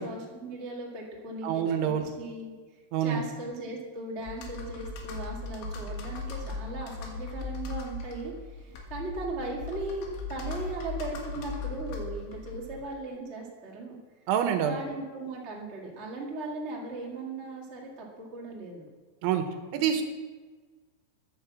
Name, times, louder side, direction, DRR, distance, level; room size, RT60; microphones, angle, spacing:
voice 1, 0.0-2.5 3.0-14.0 14.6-18.9, right 2 dB, 45° right, -2 dB, 0.8 m, -38 dB
voice 2, 1.4-2.1 2.9-3.2 14.3-14.8 19.2-19.4 19.7-20.0, right 9 dB, 90° right, 6 dB, 3.6 m, -26 dB
Computer keyboard, 4.2-12.8, left 3 dB, 80° left, 4.2 m, -38 dB
11.0 x 10.5 x 7.3 m, 1.4 s
omnidirectional pair, 5.3 m